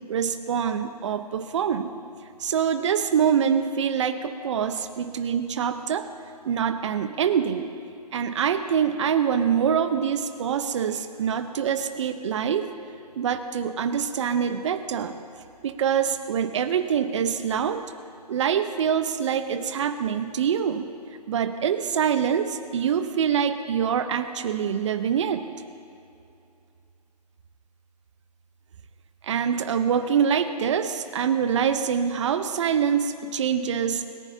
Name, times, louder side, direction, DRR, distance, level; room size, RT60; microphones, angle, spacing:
voice 1, 0.1-1.9 2.4-6.1 6.4-7.7 8.1-12.7 13.1-15.1 15.6-17.8 18.3-20.9 21.3-25.5 29.2-34.0, right 7 dB, 45° right, 9 dB, 1.0 m, -25 dB
27.5 x 15.0 x 2.9 m, 2.6 s
figure-of-eight pair, 140°, 21 cm